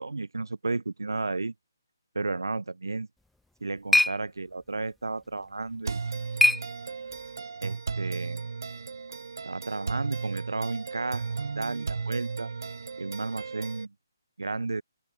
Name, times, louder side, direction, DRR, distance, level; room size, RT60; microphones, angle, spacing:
voice 1, 0.0-1.5 2.1-3.1 3.6-6.0 7.6-8.4 9.4-12.5 13.0-13.9 14.4-14.8, right 3 dB, 85° right, 0.4 m, -33 dB
sound 1, 3.2-7.4, left 2 dB, ahead, 0.3 m, -29 dB
sound 2, 5.8-13.8, right 4 dB, 65° right, 0.9 m, -35 dB
open air
figure-of-eight pair, 145°, 2 cm